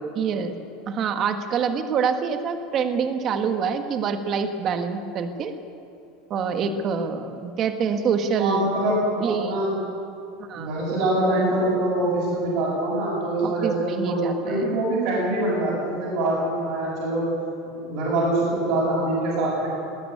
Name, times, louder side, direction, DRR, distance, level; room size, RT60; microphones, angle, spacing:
voice 1, 0.1-0.5 0.9-5.5 6.3-8.7 9.2-9.6 10.5-10.7 13.4-14.7, right 6 dB, 30° right, 7 dB, 1.4 m, -26 dB
voice 2, 8.4-9.8 10.5-17.3 17.6-19.7, right 1 dB, 50° right, -7 dB, 7.5 m, -24 dB
19.5 x 17.5 x 9.7 m, 2.6 s
supercardioid pair, 170°, 0 cm